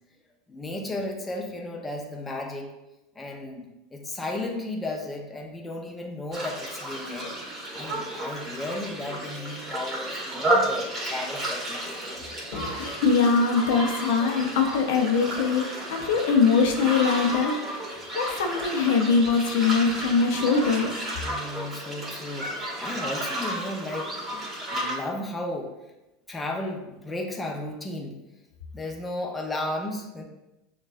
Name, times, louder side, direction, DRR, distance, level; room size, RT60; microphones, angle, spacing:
voice 1, 0.5-2.7 3.1-7.3 7.7-12.0 21.2-25.7 26.3-28.2 28.7-30.2, left 2 dB, 15° left, 1 dB, 0.6 m, -34 dB
sound 1, 6.3-25.0, right 1 dB, 20° right, 1.4 m, -32 dB
voice 2, 12.5-20.9, left 5 dB, 80° left, 3 dB, 0.6 m, -23 dB
6.1 x 2.3 x 2.5 m, 0.98 s
supercardioid pair, 105°, 0 cm